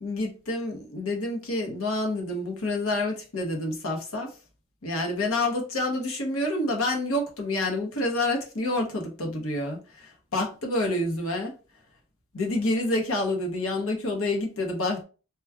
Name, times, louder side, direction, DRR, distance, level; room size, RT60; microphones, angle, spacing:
voice 1, 0.0-4.4 4.8-11.5 12.3-15.0, left 2 dB, 70° left, 0.9 m, -28 dB
3.0 x 2.3 x 3.4 m
head